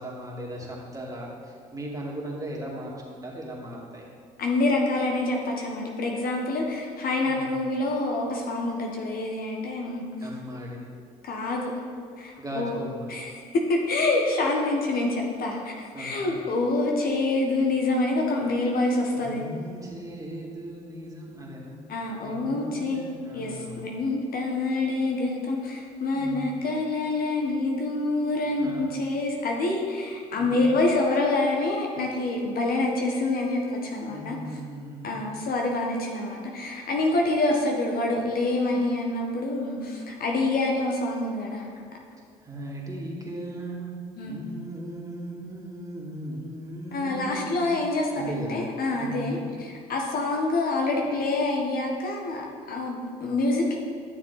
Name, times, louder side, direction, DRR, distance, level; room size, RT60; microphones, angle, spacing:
voice 1, 0.0-4.1 7.2-7.6 10.2-10.8 12.4-13.1 15.9-16.3 19.2-21.8 22.2-23.9 26.1-26.5 28.6-28.9 30.3-30.7 34.1-35.3 42.4-43.9 44.2-47.7 48.1-48.6 48.9-49.5, right 1 dB, 20° right, -3 dB, 2.5 m, -37 dB
voice 2, 4.4-10.0 11.2-11.7 12.2-12.8 13.1-19.5 21.9-23.1 23.3-34.4 35.0-41.7 44.2-44.4 46.9-53.8, left 2 dB, 55° left, 0 dB, 1.4 m, -26 dB
11.5 x 6.9 x 4.1 m, 2.2 s
hypercardioid pair, 65°, 18 cm